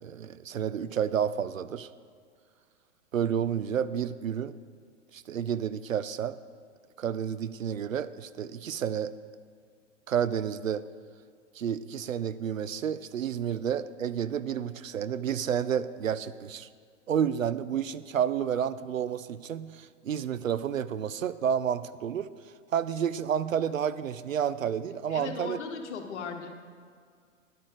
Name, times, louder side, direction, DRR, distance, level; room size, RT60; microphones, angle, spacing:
voice 1, 0.0-1.9 3.1-4.5 5.1-6.4 7.0-9.1 10.1-10.8 11.5-16.7 17.1-22.3 22.7-25.6, right 8 dB, 85° right, 15 dB, 0.5 m, -30 dB
voice 2, 25.1-26.5, left 5 dB, 60° left, 4 dB, 1.4 m, -37 dB
10.5 x 9.0 x 4.9 m, 2.1 s
figure-of-eight pair, 105°, 39 cm